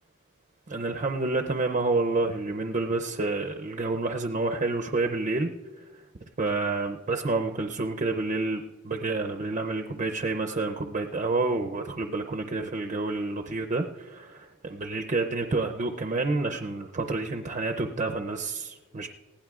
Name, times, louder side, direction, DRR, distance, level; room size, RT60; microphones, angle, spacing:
voice 1, 0.7-5.5 6.4-19.1, right 3 dB, 35° right, 4 dB, 0.5 m, -29 dB
20.0 x 16.0 x 2.4 m, 1.2 s
head